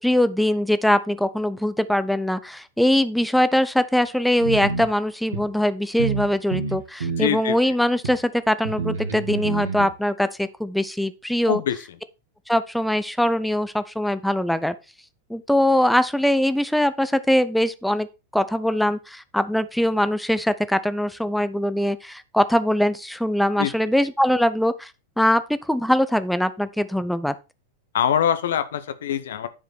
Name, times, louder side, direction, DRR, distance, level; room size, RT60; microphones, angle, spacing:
voice 1, 0.0-11.6 12.5-14.7 15.3-18.1 18.3-24.9 25.2-27.3, left 1 dB, ahead, 0.6 m, -22 dB
sound 1, 4.4-4.9 5.3-5.4 6.0-6.3 6.5-7.3 8.0-8.1 8.6-9.9, right 5 dB, 70° right, 2.3 m, -28 dB
voice 2, 7.2-7.5 11.5-11.8 23.6-23.7 27.9-29.5, left 9 dB, 60° left, 0.8 m, -23 dB
9.9 x 5.0 x 4.2 m
figure-of-eight pair, 90°, 0 cm